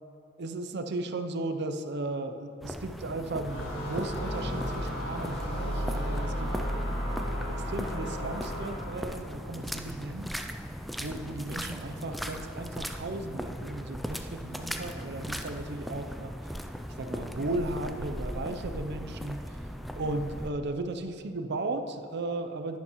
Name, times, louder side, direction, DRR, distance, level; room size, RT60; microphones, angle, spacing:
voice 1, 0.4-6.5 7.3-10.3 11.0-16.3 17.0-19.4 20.0-22.8, right 2 dB, 55° right, 8 dB, 0.6 m, -35 dB
sound 1, 2.6-20.5, equal, ahead, 0.3 m, -38 dB
sound 2, 3.4-9.1, equal, 60° left, 1.8 m, -33 dB
11.0 x 10.5 x 3.1 m, 2.9 s
head